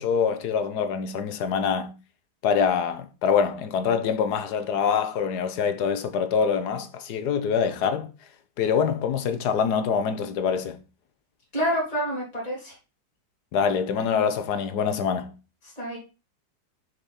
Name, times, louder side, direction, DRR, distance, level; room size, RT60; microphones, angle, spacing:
voice 1, 0.0-1.9 2.4-8.1 8.6-10.8 13.5-15.3, left 6 dB, 70° left, 1.4 m, -25 dB
voice 2, 11.5-12.8 15.6-16.0, equal, 20° left, 2.8 m, -28 dB
6.4 x 6.1 x 4.2 m
omnidirectional pair, 1.9 m